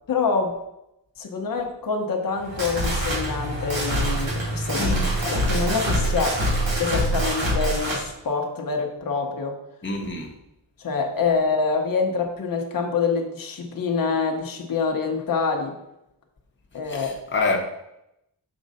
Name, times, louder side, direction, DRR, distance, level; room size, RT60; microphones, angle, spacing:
voice 1, 0.1-0.5 1.2-4.9 5.2-6.4 6.8-9.6 10.8-15.8 16.7-17.1, left 4 dB, 50° left, 0.9 m, -26 dB
sound 1, 2.3-8.0, right 1 dB, 90° right, 2.6 m, -25 dB
voice 2, 4.7-5.1 9.8-10.3 16.8-17.6, left 3 dB, 25° left, 1.0 m, -27 dB
6.2 x 4.7 x 4.1 m
wide cardioid pair, 135°, 44 cm